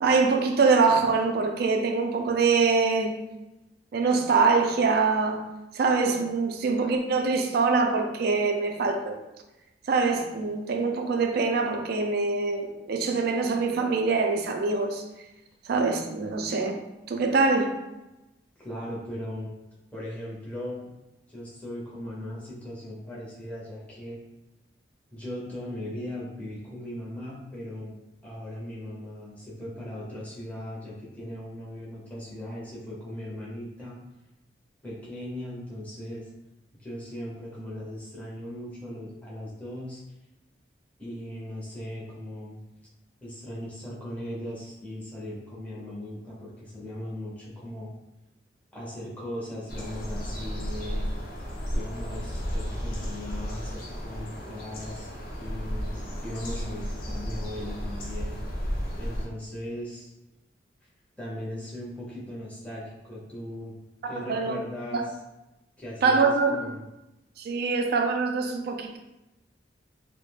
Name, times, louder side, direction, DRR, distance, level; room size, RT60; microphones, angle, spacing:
voice 1, 0.0-3.2 3.9-5.5 5.7-9.2 9.9-15.0 15.6-16.8 17.1-17.8 64.0-64.6 64.9-65.0 66.0-66.6 67.4-69.0, right 4 dB, 60° right, 4 dB, 0.3 m, -24 dB
voice 2, 18.6-19.5 19.9-20.9 21.3-24.2 25.1-28.0 28.2-34.0 34.8-36.3 36.8-40.0 41.0-42.6 43.2-47.9 48.7-51.1 51.7-55.1 55.4-58.4 59.0-60.1 61.2-63.7 64.0-65.2 65.8-66.8, left 1 dB, 10° left, -7 dB, 0.6 m, -38 dB
sound 1, 49.7-59.3, equal, 55° left, 0.5 m, -33 dB
2.3 x 2.1 x 3.1 m, 1.0 s
head